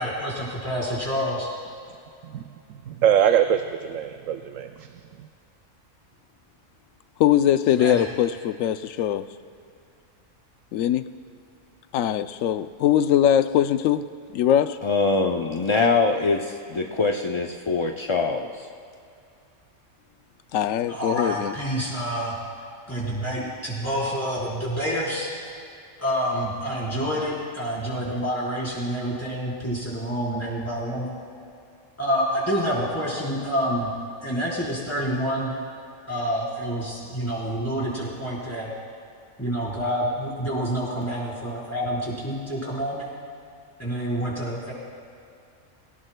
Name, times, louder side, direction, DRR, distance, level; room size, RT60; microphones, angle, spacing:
voice 1, 0.0-1.5 7.8-8.0 20.9-22.3 22.9-25.3 26.0-31.1 32.0-33.9 34.2-35.5 36.1-38.7 39.4-43.1 43.8-44.7, equal, 10° left, -7 dB, 4.1 m, -28 dB
voice 2, 2.9-4.9, right 9 dB, 85° right, 7 dB, 1.0 m, -22 dB
voice 3, 7.2-9.3 10.7-11.1 11.9-14.1 14.3-14.8 20.5-21.5, left 10 dB, 90° left, 12 dB, 1.0 m, -21 dB
voice 4, 14.8-18.7, left 3 dB, 40° left, 2 dB, 0.4 m, -23 dB
22.5 x 17.0 x 2.2 m, 2.5 s
omnidirectional pair, 1.3 m